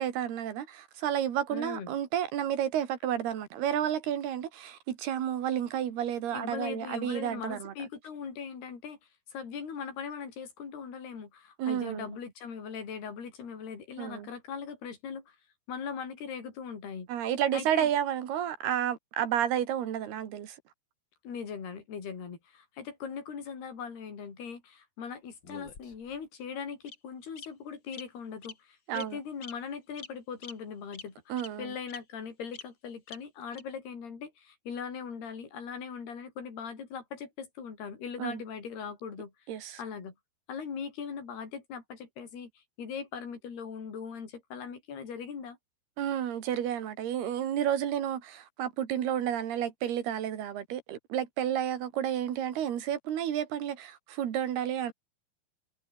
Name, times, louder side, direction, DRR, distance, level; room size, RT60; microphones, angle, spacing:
voice 1, 0.0-7.7 11.6-12.1 14.0-14.3 17.1-20.6 28.9-29.2 31.3-31.7 38.2-38.4 39.5-39.8 46.0-54.9, right 10 dB, 65° right, 4.1 m, -31 dB
voice 2, 1.5-1.9 6.3-9.0 9.3-15.4 15.7-17.1 17.5-17.9 21.2-39.3 39.8-40.2 40.5-45.6, left 6 dB, 65° left, 7.0 m, -40 dB
Bird vocalization bird call bird song, 25.4-26.2 26.9-27.0 27.4-27.5 27.9-28.0 28.4-28.6 28.9-29.1 29.4-29.5 30.0-30.1 30.4-30.5 30.9-31.0 31.4-31.5 31.9-32.0 32.5-32.6 33.1-33.2 33.5-33.6, left 5 dB, 30° left, 2.8 m, -44 dB
omnidirectional pair, 5.0 m